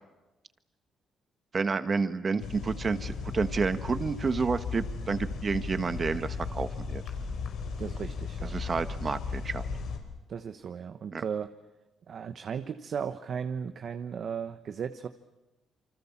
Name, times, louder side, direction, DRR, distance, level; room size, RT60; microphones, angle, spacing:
voice 1, 1.5-7.0 8.4-9.6 11.1-11.2, right 4 dB, 35° right, 10 dB, 1.5 m, -30 dB
sound 1, 2.4-10.0, left 5 dB, 75° left, 5.0 m, -36 dB
voice 2, 7.8-8.5 10.3-11.5 12.1-15.1, right 7 dB, 55° right, 9 dB, 1.1 m, -36 dB
28.0 x 25.0 x 7.4 m, 1.1 s
cardioid pair, 90°, 0 cm